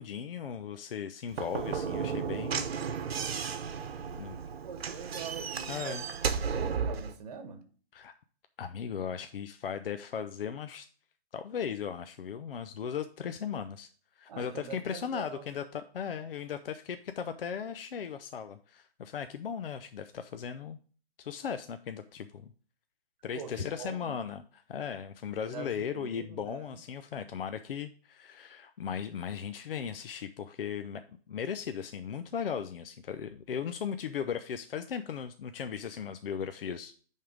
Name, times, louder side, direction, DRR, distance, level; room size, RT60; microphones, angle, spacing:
voice 1, 0.0-2.7 4.2-4.4 5.7-6.0 7.9-8.1 8.6-10.9 11.3-13.9 14.2-20.8 21.2-22.5 23.2-24.4 24.7-36.9, left 7 dB, 60° left, 0.6 m, -37 dB
Slam / Knock, 1.3-7.1, right 6 dB, 70° right, 1.0 m, -34 dB
voice 2, 4.6-7.6 14.3-15.5 23.3-24.2 25.3-26.8, right 6 dB, 40° right, 1.1 m, -44 dB
9.4 x 3.6 x 4.9 m
hypercardioid pair, 165°, 32 cm